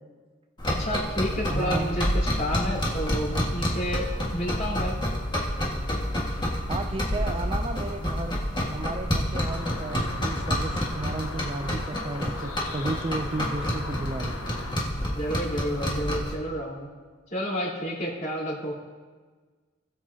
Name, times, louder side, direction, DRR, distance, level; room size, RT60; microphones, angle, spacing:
voice 1, 0.6-2.1 2.4-5.0 15.1-16.9 17.3-18.8, equal, 40° left, -8 dB, 3.6 m, -30 dB
Scratching wood, 0.6-16.3, equal, 20° left, 1.8 m, -29 dB
voice 2, 1.5-1.9 6.7-8.4 8.7-14.4, right 2 dB, 25° right, 6 dB, 0.4 m, -33 dB
sound 1, 9.3-14.7, left 3 dB, 80° left, 1.1 m, -40 dB
21.0 x 7.7 x 2.8 m, 1.4 s
head